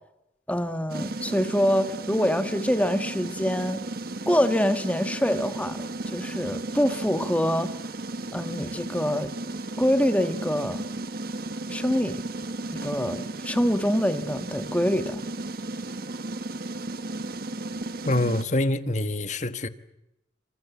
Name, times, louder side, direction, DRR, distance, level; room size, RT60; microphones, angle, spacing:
voice 1, 0.5-3.8 4.3-7.8 8.3-9.3 9.8-10.8 11.7-12.2 12.7-15.2, equal, 10° left, 1.6 m, -25 dB
sound 1, 0.9-18.4, right 2 dB, 50° right, 1.3 m, -34 dB
voice 2, 18.1-19.7, left 2 dB, 40° left, 1.4 m, -25 dB
27.0 x 25.5 x 8.2 m
head